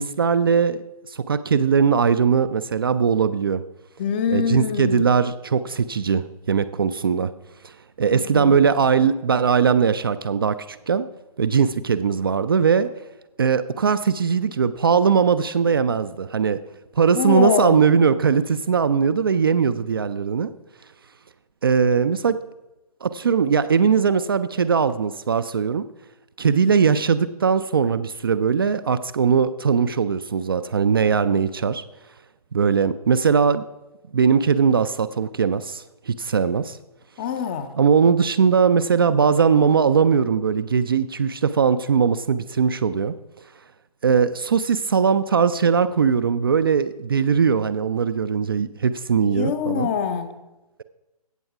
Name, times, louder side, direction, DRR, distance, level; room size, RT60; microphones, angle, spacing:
voice 1, 0.0-3.6 4.3-7.3 8.0-11.1 11.4-12.9 13.4-16.6 17.0-20.5 21.6-22.4 23.0-25.9 26.4-31.8 32.5-33.6 34.1-36.8 37.7-43.1 44.0-49.9, right 6 dB, 35° right, 11 dB, 0.4 m, -20 dB
voice 2, 4.0-5.1 8.1-8.6 17.1-17.8 37.2-37.7 49.2-50.3, left 7 dB, 15° left, 10 dB, 0.5 m, -24 dB
16.5 x 7.0 x 4.8 m, 1.0 s
figure-of-eight pair, 140°, 20 cm